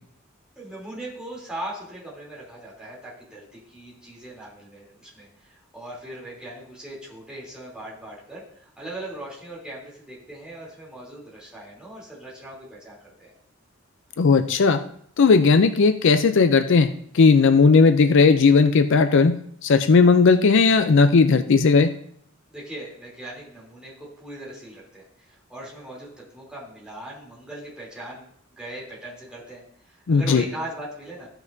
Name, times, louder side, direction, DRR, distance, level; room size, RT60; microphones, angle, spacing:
voice 1, 0.5-13.3 22.5-31.3, right 1 dB, 5° right, -6 dB, 3.2 m, -39 dB
voice 2, 14.2-14.8 15.2-19.3 19.6-21.9 30.1-30.4, left 4 dB, 65° left, 10 dB, 0.5 m, -16 dB
15.0 x 5.9 x 2.7 m, 0.65 s
head